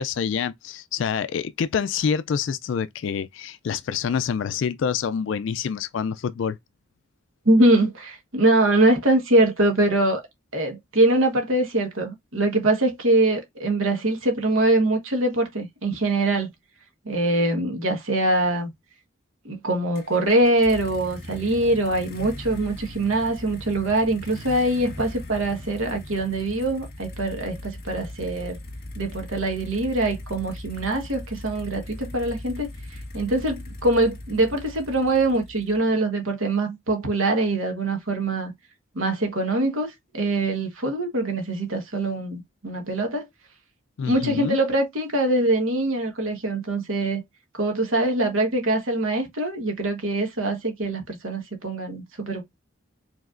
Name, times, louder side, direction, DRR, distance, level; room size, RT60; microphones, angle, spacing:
voice 1, 0.0-6.6 44.0-44.6, left 7 dB, 65° left, 0.3 m, -27 dB
voice 2, 7.4-10.2 10.5-16.5 17.0-18.7 19.4-28.6 28.9-38.5 38.9-43.3 44.0-47.2 47.6-52.4, right 2 dB, 80° right, 1.4 m, -23 dB
sound 1, 19.9-35.9, left 1 dB, 50° left, 1.6 m, -39 dB
5.0 x 3.3 x 2.5 m
head